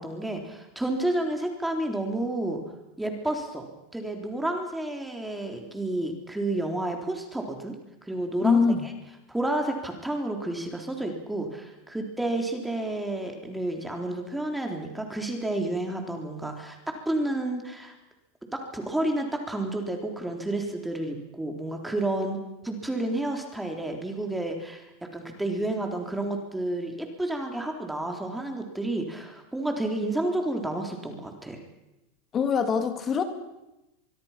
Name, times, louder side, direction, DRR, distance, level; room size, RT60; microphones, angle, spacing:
voice 1, 0.0-2.6 3.0-7.7 8.0-8.6 9.3-17.9 18.5-24.8 25.1-31.6, right 1 dB, 5° right, 3 dB, 3.8 m, -30 dB
voice 2, 8.4-8.9 32.3-33.2, left 6 dB, 30° left, 7 dB, 2.8 m, -23 dB
24.0 x 24.0 x 5.9 m, 0.95 s
supercardioid pair, 120°, 0 cm